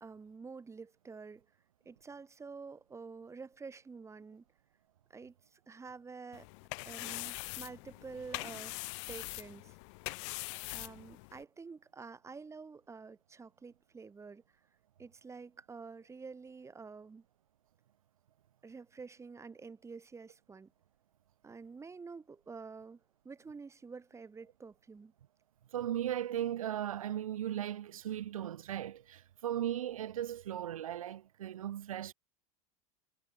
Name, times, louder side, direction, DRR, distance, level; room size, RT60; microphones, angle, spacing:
voice 1, 0.0-1.4 1.9-4.4 5.1-6.5 6.8-8.7 9.0-9.8 10.7-14.4 15.0-17.2 18.6-20.7 21.4-23.0 23.2-25.1, right 4 dB, 15° right, 2.2 m, -49 dB
sound 1, 6.3-11.4, left 31 dB, 60° left, 2.7 m, -43 dB
voice 2, 25.7-32.1, right 11 dB, 90° right, 0.5 m, -37 dB
hypercardioid pair, 95°, 17 cm